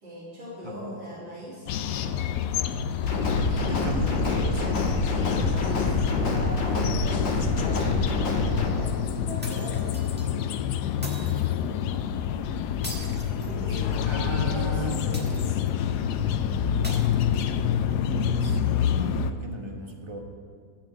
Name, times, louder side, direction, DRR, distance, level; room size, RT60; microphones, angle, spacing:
voice 1, 0.0-2.5 3.4-4.1 4.6-10.5 13.4-15.7, equal, 60° right, -12 dB, 3.9 m, -40 dB
voice 2, 0.6-1.2 3.3-4.6 12.8-13.2 13.7-15.1 18.4-20.2, right 1 dB, 20° right, 1 dB, 0.7 m, -37 dB
sound 1, 1.7-19.3, left 8 dB, 85° left, 0.9 m, -27 dB
sound 2, 3.0-8.7, left 3 dB, 60° left, 2.1 m, -26 dB
sound 3, 9.4-10.3 11.0-11.6 12.8-14.1 15.1-15.8 16.8-17.8, equal, 5° right, 1.2 m, -41 dB
13.5 x 5.8 x 7.7 m, 2.1 s
omnidirectional pair, 2.3 m